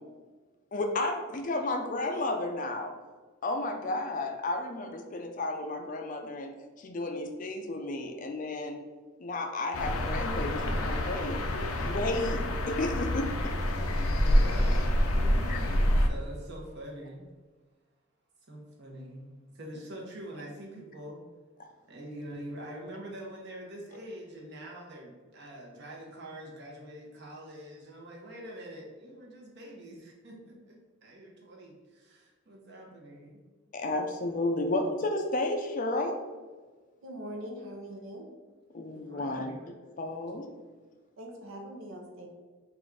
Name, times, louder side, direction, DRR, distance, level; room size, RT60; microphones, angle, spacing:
voice 1, 0.7-2.9 3.4-8.8 9.2-11.4 11.8-13.5 15.5-15.6 33.7-36.2 38.7-39.5 40.0-40.5, left 2 dB, 40° left, 4 dB, 0.4 m, -32 dB
sound 1, 9.7-16.1, left 1 dB, 90° left, 0.5 m, -27 dB
voice 2, 12.0-12.5 12.8-12.9 14.1-17.2 18.5-21.2 21.9-33.4 38.9-39.7, right 1 dB, 55° right, -2 dB, 1.1 m, -45 dB
voice 3, 37.0-38.3 41.2-42.3, equal, 70° right, 1 dB, 0.8 m, -42 dB
4.1 x 2.5 x 4.7 m, 1.4 s
head